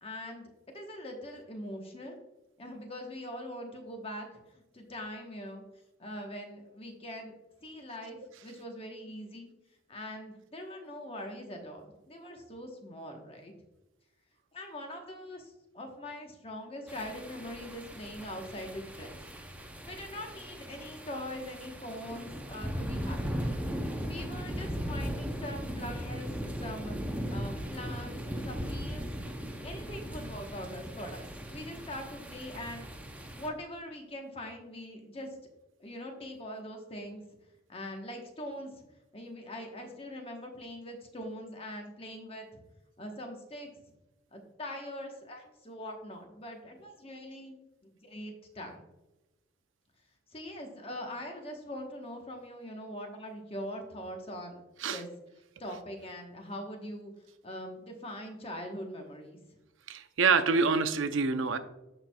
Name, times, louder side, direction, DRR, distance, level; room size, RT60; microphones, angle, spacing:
voice 1, 0.0-2.2 2.6-4.4 4.7-5.6 6.0-7.3 7.6-9.5 9.9-13.5 14.5-19.2 19.9-23.3 24.1-27.0 27.3-28.2 28.5-29.1 29.6-32.9 33.4-35.3 35.8-37.2 37.7-38.8 39.1-42.5 43.0-43.7 44.3-47.6 48.0-48.9 50.3-55.1 55.6-57.1 57.4-59.4, left 1 dB, 30° left, 3 dB, 1.0 m, -42 dB
sound 1, 16.9-33.5, equal, 5° right, 0.6 m, -38 dB
voice 2, 59.9-61.6, right 4 dB, 80° right, 10 dB, 0.6 m, -26 dB
13.5 x 4.4 x 2.3 m, 1.0 s
head